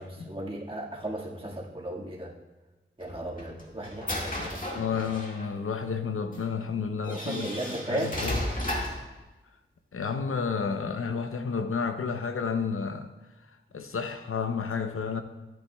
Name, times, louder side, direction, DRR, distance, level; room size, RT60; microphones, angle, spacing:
voice 1, 0.0-2.3 3.0-5.2 7.0-8.2, right 1 dB, 25° right, -3 dB, 1.8 m, -36 dB
sound 1, 3.0-5.5 6.3-6.4 7.0-9.1, left 1 dB, 40° left, 1.9 m, -34 dB
voice 2, 4.4-7.5 7.9-8.4 9.9-13.1 13.7-15.2, left 5 dB, 85° left, 8 dB, 0.7 m, -31 dB
14.5 x 8.5 x 2.3 m, 1.1 s
wide cardioid pair, 60°, 21 cm